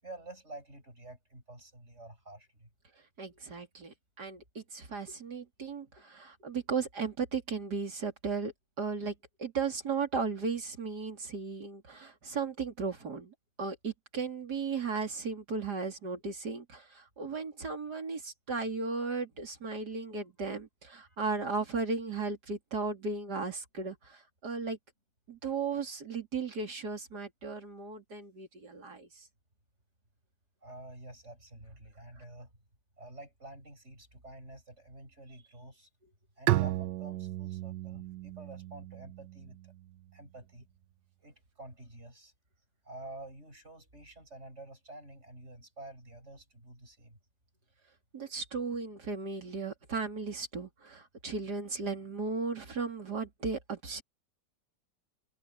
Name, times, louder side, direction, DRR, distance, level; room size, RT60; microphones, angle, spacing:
voice 1, 0.0-2.7 19.8-19.9 21.1-21.2 30.6-32.5 33.0-35.9 36.4-39.7 40.1-40.7 41.2-42.3 42.8-47.2, right 2 dB, 40° right, 7.8 m, -49 dB
voice 2, 3.2-9.1 9.4-24.8 25.3-29.2 48.1-54.0, right 4 dB, 65° right, 3.8 m, -36 dB
Bowed string instrument, 36.5-40.0, right 15 dB, 80° right, 1.3 m, -34 dB
omnidirectional pair, 1.9 m